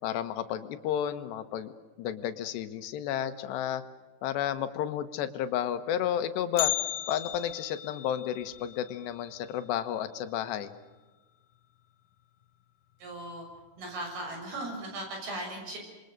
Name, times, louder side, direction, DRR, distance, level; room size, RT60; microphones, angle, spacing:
voice 1, 0.0-1.7 2.0-3.8 4.2-6.7 7.1-10.7, left 10 dB, 85° left, 10 dB, 3.4 m, -32 dB
Bell, 6.6-10.7 10.9-11.0 11.5-11.6 12.4-12.5 13.3-13.6 13.9-14.0, left 14 dB, 70° left, 1.9 m, -37 dB
voice 2, 13.0-13.5 13.8-15.8, right 1 dB, 65° right, 2 dB, 8.8 m, -37 dB
27.5 x 23.0 x 6.7 m, 1.2 s
omnidirectional pair, 4.8 m